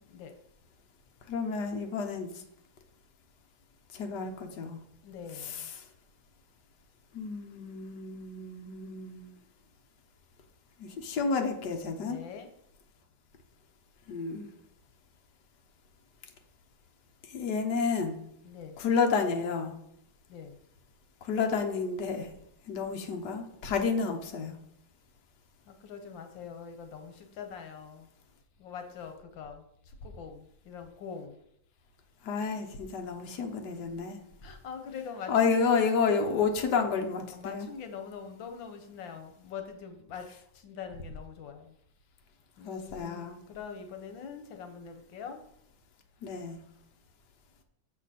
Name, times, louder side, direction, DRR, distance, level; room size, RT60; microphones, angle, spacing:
voice 1, 1.3-2.3 3.9-4.8 5.4-5.7 7.1-9.3 10.8-12.2 14.1-14.5 17.3-18.2 18.8-19.8 21.2-22.3 22.7-24.5 32.2-34.2 35.3-37.7 42.6-43.4 46.2-46.6, left 5 dB, 70° left, 4 dB, 1.6 m, -30 dB
voice 2, 5.0-5.7 12.0-12.5 18.4-18.8 20.3-20.6 25.7-28.1 28.6-31.4 34.4-35.8 37.3-40.3 40.5-41.7 42.6-45.4, left 6 dB, 90° left, 6 dB, 1.7 m, -43 dB
7.8 x 6.7 x 4.2 m, 0.72 s
omnidirectional pair, 2.0 m